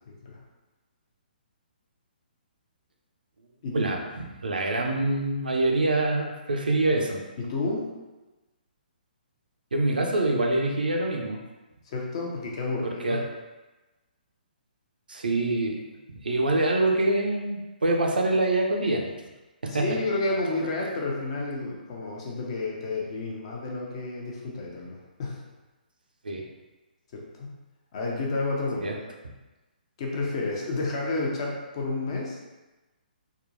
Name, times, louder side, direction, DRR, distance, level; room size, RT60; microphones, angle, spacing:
voice 1, 3.7-7.2 9.7-11.4 12.8-13.3 15.1-15.8 16.2-19.1 19.6-20.0 26.2-26.4 28.8-28.9, right 2 dB, 65° right, 1 dB, 0.5 m, -25 dB
voice 2, 7.4-7.9 11.9-13.2 19.7-25.4 27.1-27.6 27.9-28.9 30.0-32.4, left 2 dB, 35° left, -2 dB, 0.6 m, -30 dB
3.6 x 2.2 x 2.5 m, 1.1 s
figure-of-eight pair, 130°, 5 cm